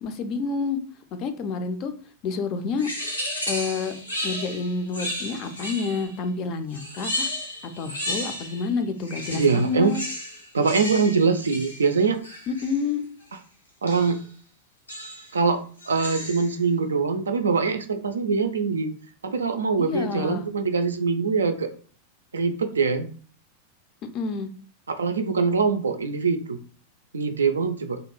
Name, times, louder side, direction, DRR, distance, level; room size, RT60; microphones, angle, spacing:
voice 1, 0.0-0.8 1.2-1.9 2.2-2.9 3.5-3.9 4.2-7.3 7.8-10.0 12.5-13.0 19.9-20.5 24.1-24.5, left 4 dB, 40° left, 9 dB, 0.4 m, -28 dB
sound 1, 2.8-6.2 6.7-8.7 9.0-12.8 13.9-14.2 14.9-15.3 15.8-16.6, left 1 dB, 85° left, 0.8 m, -33 dB
voice 2, 9.3-9.9 10.5-12.2 13.8-14.2 15.3-18.9 19.2-21.7 22.3-23.1 24.9-26.6 27.1-28.0, right 5 dB, 70° right, 7 dB, 0.3 m, -23 dB
2.5 x 2.2 x 3.0 m, 0.42 s
figure-of-eight pair, 90°, 0 cm